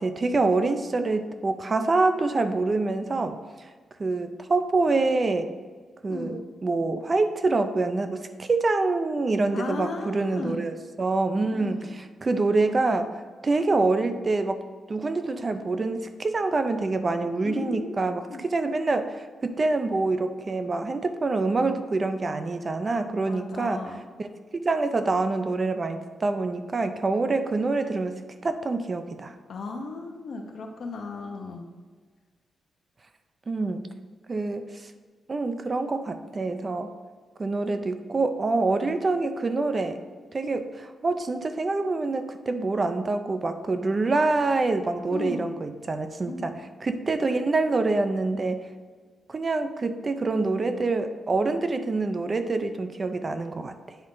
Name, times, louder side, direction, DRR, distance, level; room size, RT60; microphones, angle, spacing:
voice 1, 0.0-3.7 4.0-5.5 6.0-13.1 13.4-14.6 14.9-23.8 24.2-24.3 24.5-29.3 33.5-33.9 34.3-34.9 35.3-36.9 37.4-40.0 40.3-48.6 49.3-54.0, right 3 dB, 35° right, 8 dB, 0.5 m, -26 dB
voice 2, 6.1-6.4 9.5-10.6 11.5-12.0 17.4-18.5 23.3-24.0 29.5-31.7 45.1-45.7 46.2-46.7, left 3 dB, 70° left, 3 dB, 0.9 m, -36 dB
9.4 x 3.8 x 3.8 m, 1.5 s
cardioid pair, 100°, 0 cm